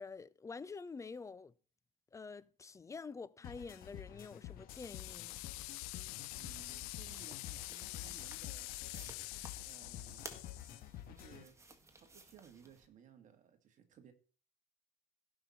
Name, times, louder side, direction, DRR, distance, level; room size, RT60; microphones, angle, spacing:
voice 1, 0.0-1.5 2.1-5.4, left 4 dB, 15° left, 0.5 m, -48 dB
sound 1, 3.4-11.4, left 11 dB, 55° left, 1.6 m, -50 dB
sound 2, 4.7-10.8, left 23 dB, 85° left, 0.4 m, -46 dB
voice 2, 6.4-8.8 9.6-10.3 11.0-11.6 11.9-14.1, right 8 dB, 45° right, 2.1 m, -60 dB
sound 3, 7.1-12.9, right 3 dB, 15° right, 1.7 m, -57 dB
16.5 x 5.9 x 4.2 m
supercardioid pair, 105°, 18 cm